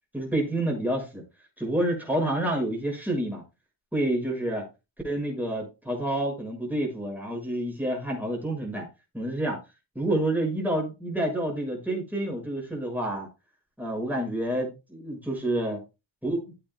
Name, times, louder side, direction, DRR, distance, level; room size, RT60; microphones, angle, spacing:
voice 1, 0.1-1.2 1.6-3.4 3.9-4.7 5.0-8.9 9.1-9.6 9.9-13.3 13.8-15.8 16.2-16.5, right 1 dB, 5° right, -1 dB, 6.7 m, -28 dB
15.5 x 8.9 x 2.3 m, 0.26 s
cardioid pair, 95°, 46 cm